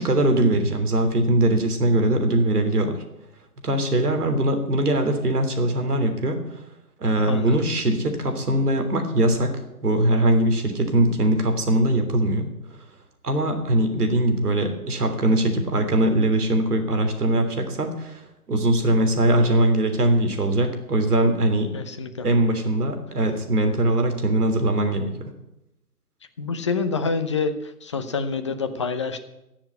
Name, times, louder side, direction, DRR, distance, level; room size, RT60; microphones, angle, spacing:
voice 1, 0.0-3.0 3.6-6.6 7.0-12.5 13.2-21.7 22.2-25.3, right 1 dB, 75° right, 5 dB, 3.4 m, -21 dB
voice 2, 7.3-7.6 21.7-22.3 26.4-29.2, left 4 dB, 20° left, 8 dB, 0.6 m, -27 dB
14.5 x 7.2 x 9.8 m, 0.90 s
hypercardioid pair, 155°, 46 cm